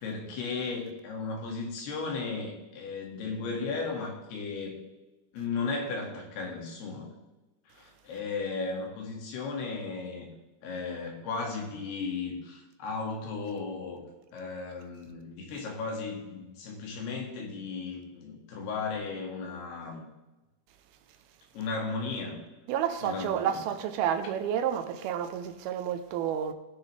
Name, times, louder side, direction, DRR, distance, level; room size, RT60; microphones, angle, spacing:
voice 1, 0.0-4.8 5.3-7.1 7.7-10.3 10.6-14.0 14.3-20.0 21.5-22.4 23.0-23.6, left 4 dB, 75° left, 4.0 m, -35 dB
voice 2, 22.7-26.5, right 9 dB, 75° right, 2.5 m, -30 dB
19.0 x 6.7 x 3.3 m
omnidirectional pair, 4.7 m